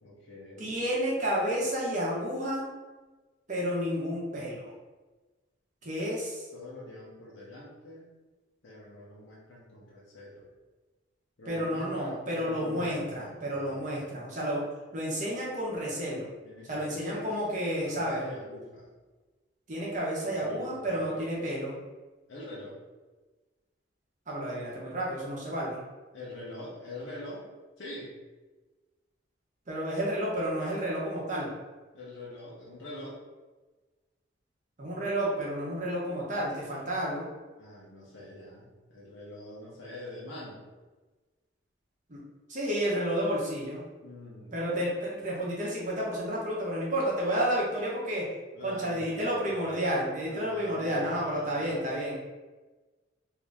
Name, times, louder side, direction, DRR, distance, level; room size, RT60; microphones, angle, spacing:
voice 1, 0.0-0.8 6.5-8.1 8.6-10.4 11.4-14.1 16.4-17.3 17.8-18.9 20.2-21.2 22.3-22.8 26.1-27.5 27.8-28.1 31.9-33.2 37.6-40.6 44.0-44.6 48.5-50.0 50.3-52.0, left 1 dB, 75° left, -7 dB, 0.8 m, -44 dB
voice 2, 0.6-2.6 3.5-4.7 5.8-6.5 11.5-14.6 14.9-16.2 16.7-18.2 19.7-21.8 24.3-25.8 29.7-31.5 34.8-37.3 42.1-42.2 42.5-43.8 44.5-48.3 48.6-52.2, equal, 40° right, -5 dB, 0.9 m, -31 dB
2.8 x 2.6 x 3.4 m, 1.2 s
head